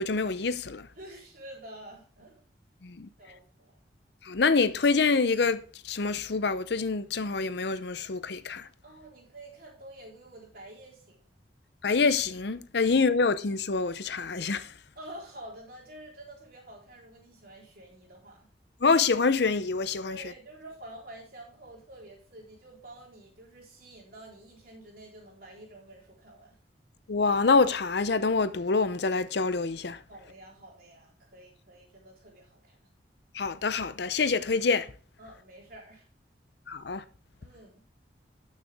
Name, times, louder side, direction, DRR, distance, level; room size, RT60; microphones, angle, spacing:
voice 1, 0.0-0.9 2.8-3.1 4.2-5.6 5.8-8.7 11.8-14.7 18.8-20.2 27.1-30.0 33.3-34.9 36.7-37.0, left 4 dB, 60° left, 0.6 m, -26 dB
voice 2, 0.9-2.4 3.2-3.4 8.8-11.3 12.8-12.9 15.0-18.5 20.1-26.6 30.1-32.8 35.2-36.1 37.4-37.8, right 1 dB, 50° right, 3.8 m, -48 dB
12.5 x 6.6 x 3.5 m
head